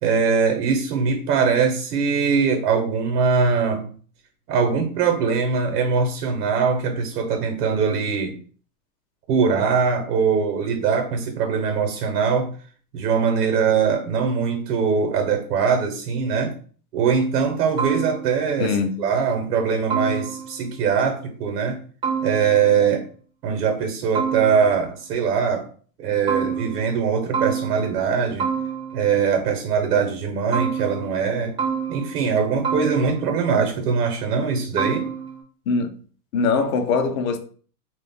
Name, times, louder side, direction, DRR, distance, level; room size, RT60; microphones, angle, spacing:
voice 1, 0.0-3.9 4.5-8.3 9.3-12.5 12.9-16.5 16.9-21.8 22.2-23.1 23.4-25.7 26.0-28.5 28.9-31.5 31.9-35.1, right 6 dB, 85° right, 0.8 m, -22 dB
sound 1, 17.8-18.6 19.9-20.7 22.0-22.8 24.1-24.9 26.3-27.1 27.3-28.1 28.4-29.2 30.5-31.3 31.6-32.4 32.6-33.4 34.8-35.4, right 6 dB, 10° right, 0.4 m, -28 dB
voice 2, 18.6-19.0 35.7-35.9 36.3-37.4, left 4 dB, 65° left, 0.6 m, -22 dB
2.3 x 2.1 x 3.4 m
supercardioid pair, 145°, 45 cm